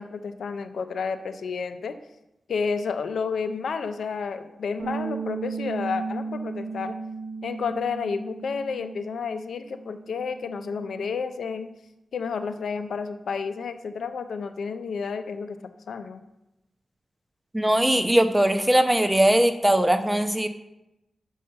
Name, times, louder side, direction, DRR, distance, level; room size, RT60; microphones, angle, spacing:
voice 1, 0.0-1.9 2.5-7.0 7.4-11.7 12.1-15.6 15.9-16.2, left 5 dB, 85° left, 9 dB, 0.5 m, -31 dB
Bass guitar, 4.8-11.0, right 5 dB, 75° right, 1.3 m, -35 dB
voice 2, 17.5-20.5, right 1 dB, 10° right, 8 dB, 0.8 m, -20 dB
5.5 x 5.4 x 6.6 m, 0.92 s
cardioid pair, 60°, 0 cm